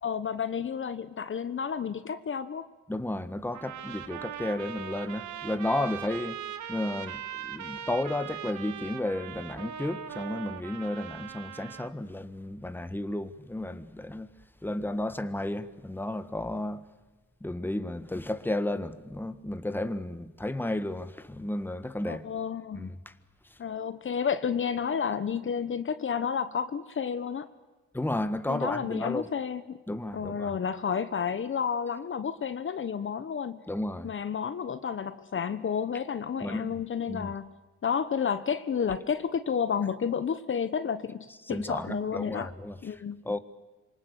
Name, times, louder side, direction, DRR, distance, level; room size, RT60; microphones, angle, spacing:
voice 1, 0.0-2.7 22.1-22.9 23.6-27.5 28.5-29.8 30.1-33.6 34.0-37.5 37.8-42.5 42.8-43.2, left 7 dB, 40° left, 1.1 m, -31 dB
voice 2, 2.9-6.4 6.7-14.3 14.6-16.8 17.4-22.3 22.7-23.1 27.9-29.3 29.9-30.5 33.7-34.1 36.4-36.7 37.1-37.3 41.4-43.4, left 1 dB, 5° left, 1.6 m, -33 dB
sound 1, 3.5-11.9, right 9 dB, 75° right, 1.7 m, -40 dB
26.5 x 24.5 x 8.4 m
cardioid pair, 90°, 30 cm